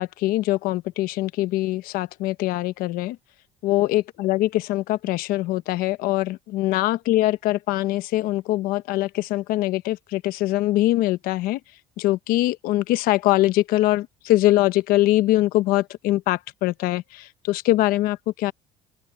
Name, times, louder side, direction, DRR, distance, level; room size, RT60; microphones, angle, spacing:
voice 1, 0.0-3.2 3.6-11.6 12.0-18.5, left 16 dB, 80° left, 0.9 m, -23 dB
open air
cardioid pair, 115°, 15 cm